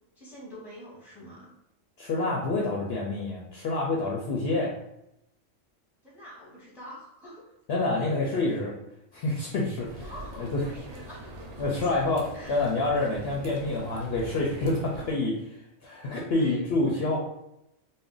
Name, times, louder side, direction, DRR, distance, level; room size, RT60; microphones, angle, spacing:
voice 1, 0.2-1.5 6.0-7.4 10.0-12.0 12.3-12.6 16.0-16.6 16.9-17.1, equal, ahead, -5 dB, 0.8 m, -46 dB
voice 2, 2.0-4.8 7.7-8.7 9.1-10.1 10.4-10.6 11.6-12.2 12.5-17.2, left 2 dB, 65° left, -2 dB, 0.7 m, -27 dB
sound 1, 9.8-15.1, right 1 dB, 75° right, 0.9 m, -43 dB
2.4 x 2.1 x 3.6 m, 0.82 s
omnidirectional pair, 1.3 m